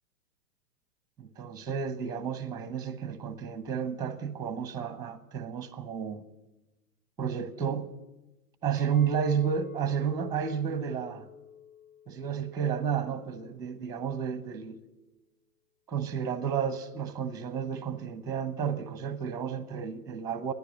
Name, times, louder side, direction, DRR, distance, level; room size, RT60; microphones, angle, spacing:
voice 1, 1.2-6.2 7.2-7.9 8.6-11.3 12.1-14.8 15.9-20.5, right 7 dB, 10° right, 0.8 m, -32 dB
Chink clink, 8.8-13.9, left 7 dB, 35° left, 2.1 m, -50 dB
15.0 x 10.5 x 9.0 m
hypercardioid pair, 130°, 46 cm